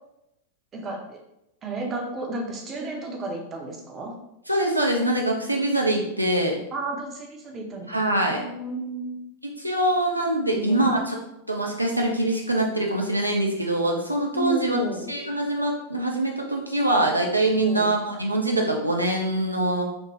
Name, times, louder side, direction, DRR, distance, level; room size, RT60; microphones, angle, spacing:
voice 1, 0.7-1.2 1.6-4.1 6.7-8.0 8.3-9.2 10.5-11.0 14.3-15.1 17.6-17.9, right 2 dB, 25° right, 1 dB, 0.6 m, -32 dB
voice 2, 4.5-6.6 7.9-8.4 9.4-11.2 11.5-14.8 15.1-19.8, right 1 dB, 90° right, -1 dB, 0.4 m, -24 dB
3.1 x 2.1 x 3.0 m, 0.85 s
figure-of-eight pair, 90°, 0 cm